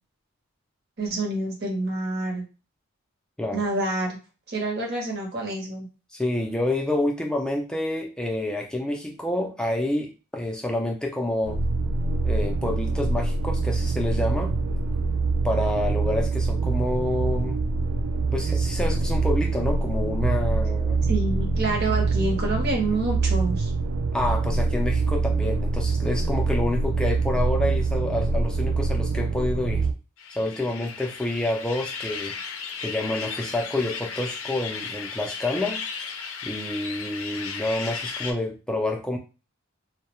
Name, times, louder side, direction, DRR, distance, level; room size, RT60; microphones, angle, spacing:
voice 1, 1.0-2.4 3.5-4.2 4.5-5.9 21.1-23.7, right 2 dB, 50° right, 0 dB, 0.8 m, -27 dB
voice 2, 6.1-11.6 12.2-14.5 15.4-17.6 18.2-21.0 24.1-29.9 30.4-32.4 32.8-35.8 36.4-39.2, left 1 dB, 5° left, 1 dB, 0.3 m, -28 dB
sound 1, 11.4-29.9, right 3 dB, 90° right, 0.4 m, -25 dB
sound 2, 30.2-38.3, left 6 dB, 80° left, 0.4 m, -35 dB
2.2 x 2.1 x 2.9 m, 0.32 s
head